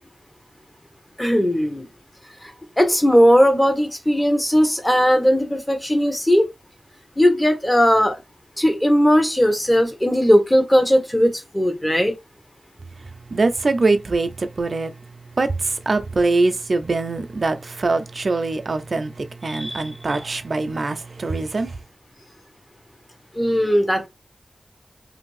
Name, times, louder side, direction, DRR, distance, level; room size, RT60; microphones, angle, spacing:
voice 1, 1.2-1.9 2.4-2.5 2.8-6.5 7.2-8.2 8.6-12.1 19.5-20.2 23.3-24.1, equal, 20° left, 0.9 m, -18 dB
voice 2, 13.3-14.9 15.4-21.8, right 3 dB, 60° right, 0.3 m, -23 dB
2.6 x 2.5 x 3.0 m
wide cardioid pair, 75°, 0 cm